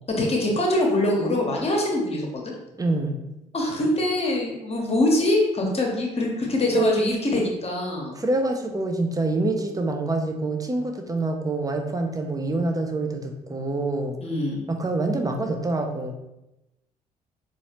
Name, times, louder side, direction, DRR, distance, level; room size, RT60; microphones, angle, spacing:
voice 1, 0.1-2.4 3.5-8.2 14.2-14.6, left 1 dB, 30° left, -1 dB, 1.1 m, -23 dB
voice 2, 2.8-3.2 6.6-7.0 8.1-14.2 14.7-16.1, right 2 dB, 20° right, 4 dB, 0.6 m, -26 dB
4.0 x 2.5 x 2.9 m, 0.93 s
figure-of-eight pair, 45°, 20 cm